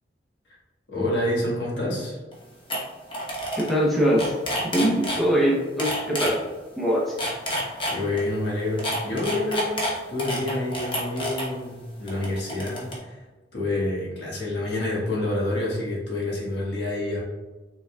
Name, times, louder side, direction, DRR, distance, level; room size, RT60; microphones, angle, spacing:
voice 1, 0.9-2.2 7.9-13.2 13.5-17.2, left 2 dB, 65° left, -5 dB, 1.4 m, -28 dB
sound 1, 2.3-2.4 2.7-2.8 3.1-3.7 4.0-5.2 5.8-6.3 7.0-8.2 8.8-11.4 12.1-12.9, equal, 25° left, 0.9 m, -28 dB
voice 2, 3.6-4.4 4.7-6.4 6.8-7.2, equal, ahead, -6 dB, 0.7 m, -22 dB
5.8 x 3.5 x 2.3 m, 1.2 s
head